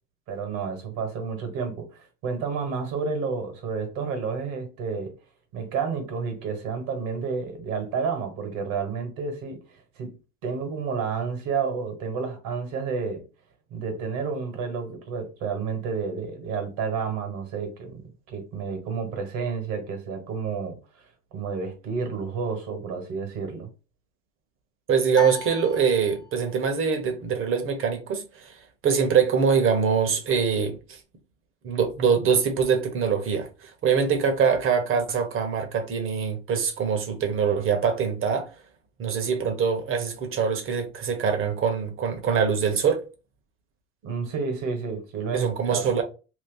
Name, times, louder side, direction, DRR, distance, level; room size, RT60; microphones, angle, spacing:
voice 1, 0.3-5.1 5.5-10.2 10.4-13.2 13.7-18.0 18.3-20.8 21.3-23.7 44.0-45.9, right 5 dB, 55° right, 1.5 m, -30 dB
voice 2, 24.9-31.0 31.6-38.5 39.0-43.0 45.3-46.0, right 6 dB, 35° right, 1.1 m, -24 dB
sound 1, 25.1-26.6, left 3 dB, 10° left, 0.5 m, -36 dB
2.9 x 2.4 x 3.8 m
supercardioid pair, 105°, 37 cm